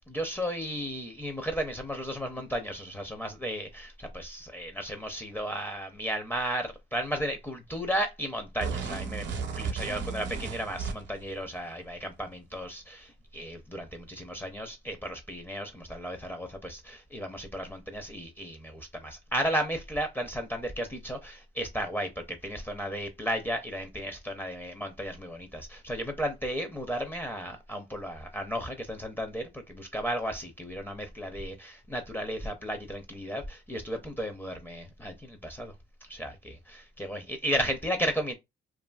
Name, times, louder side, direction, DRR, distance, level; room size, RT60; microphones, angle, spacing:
voice 1, 0.1-35.7 36.1-38.3, equal, 10° left, 0.5 m, -34 dB
sound 1, 8.6-11.3, right 5 dB, 65° right, 0.6 m, -34 dB
2.5 x 2.5 x 2.2 m
cardioid pair, 90°, 20 cm